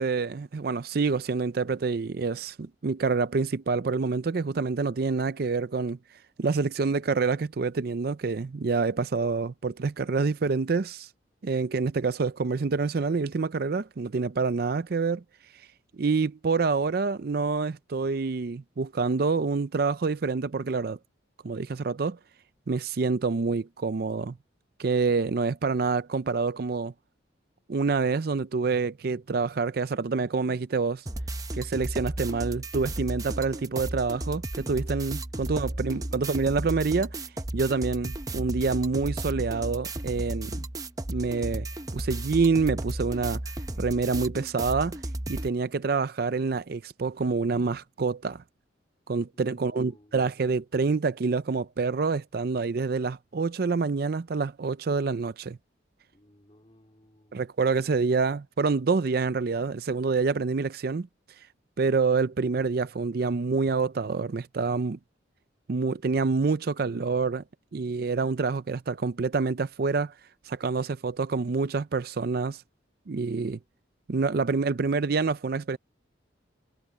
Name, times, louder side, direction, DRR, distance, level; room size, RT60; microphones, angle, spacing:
voice 1, 0.0-6.0 6.4-11.1 11.4-15.2 16.0-21.0 21.4-22.2 22.7-24.4 24.8-26.9 27.7-31.0 31.5-37.2 37.5-40.6 41.1-41.7 41.9-43.4 43.8-45.0 45.3-48.4 49.1-55.6 57.3-61.1 61.8-65.0 65.7-67.4 67.7-70.1 70.5-72.6 73.1-73.6 74.1-75.8, right 4 dB, 55° right, 0.5 m, -27 dB
sound 1, 31.1-45.5, right 1 dB, 20° right, 0.8 m, -34 dB
voice 2, 49.3-50.3 56.1-57.5, left 1 dB, 30° left, 4.1 m, -58 dB
head